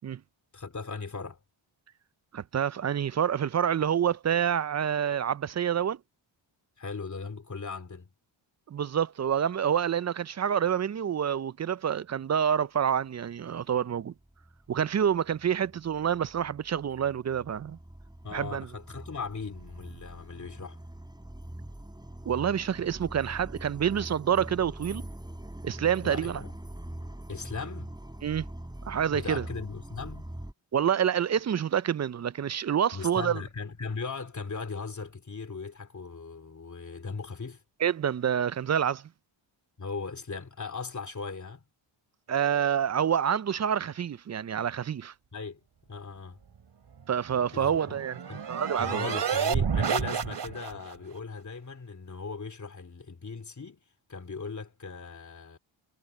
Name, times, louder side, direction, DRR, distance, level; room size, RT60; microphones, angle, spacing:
voice 1, 0.5-1.4 6.8-8.1 18.2-20.8 26.0-26.5 27.3-27.9 29.1-30.3 32.9-37.6 39.8-41.6 45.3-45.6 45.9-46.4 47.5-48.0 48.3-48.4 48.8-53.8 54.1-55.6, left 4 dB, 35° left, 3.0 m, -38 dB
voice 2, 2.3-6.0 8.7-14.1 14.7-17.8 18.3-18.7 22.3-25.0 25.6-26.4 28.2-28.4 28.9-29.4 30.7-33.4 37.8-39.0 42.3-45.1 47.1-48.1 48.5-49.1, right 8 dB, 35° right, 0.5 m, -27 dB
sound 1, 14.2-30.5, right 1 dB, 10° right, 7.6 m, -43 dB
sound 2, 47.4-50.9, right 7 dB, 55° right, 2.7 m, -30 dB
cardioid pair, 85°, 49 cm